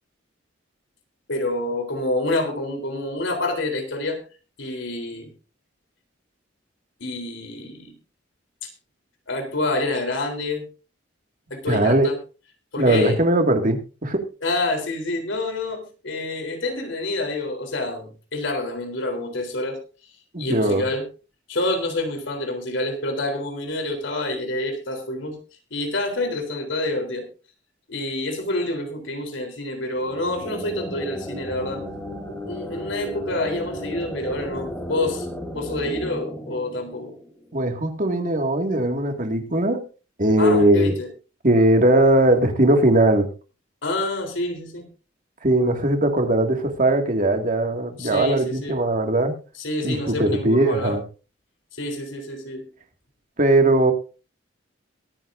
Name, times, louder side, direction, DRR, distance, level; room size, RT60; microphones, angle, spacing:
voice 1, 1.3-4.2 4.6-5.3 7.0-7.9 8.6-8.7 9.3-10.7 11.5-12.2 12.7-13.2 14.4-19.8 20.4-21.0 21.5-25.4 25.7-27.2 27.9-31.8 32.2-35.3 35.5-37.1 40.4-41.1 43.8-44.9 48.0-48.8 49.6-51.0 51.8-52.7, left 2 dB, 80° left, 4 dB, 3.7 m, -27 dB
voice 2, 11.7-12.1 12.8-14.3 20.3-20.8 37.5-39.8 40.2-40.9 41.4-43.3 45.4-49.3 49.8-51.0 53.4-53.9, right 1 dB, 45° right, 4 dB, 2.1 m, -19 dB
sound 1, 30.0-37.6, equal, 10° left, 3.3 m, -34 dB
23.0 x 9.9 x 2.6 m, 0.35 s
head